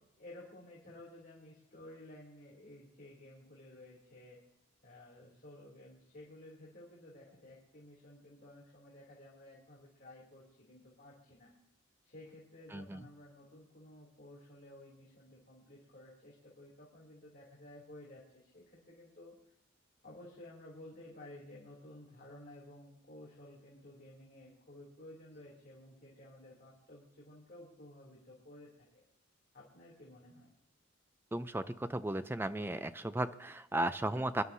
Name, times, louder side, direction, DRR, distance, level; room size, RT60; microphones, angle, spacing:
voice 1, 0.1-4.4 4.8-11.5 12.0-19.5 20.0-29.0 29.5-30.5, left 1 dB, 45° left, -5 dB, 3.1 m, -54 dB
voice 2, 12.7-13.0 31.3-34.4, right 1 dB, 10° right, 11 dB, 0.5 m, -35 dB
24.5 x 11.5 x 2.7 m, 0.81 s
head